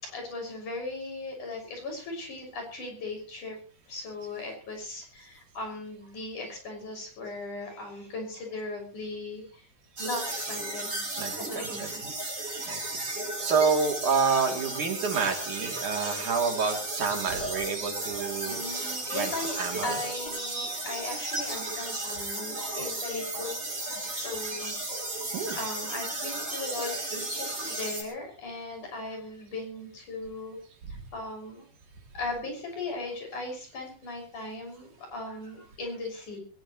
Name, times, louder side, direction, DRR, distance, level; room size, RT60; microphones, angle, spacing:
voice 1, 0.0-3.6 3.9-9.7 10.0-11.1 11.4-12.1 18.4-19.6 19.8-23.6 24.2-24.8 25.5-30.6 30.9-31.7 32.1-36.4, left 2 dB, 65° left, 2 dB, 7.9 m, -38 dB
sound 1, 10.0-28.0, right 2 dB, 30° right, 6.4 m, -34 dB
voice 2, 11.2-11.9 12.7-13.0 13.4-18.6 19.1-20.0 25.3-25.6, right 5 dB, 65° right, 2 dB, 4.6 m, -28 dB
21.5 x 19.5 x 3.2 m, 0.37 s
omnidirectional pair, 3.9 m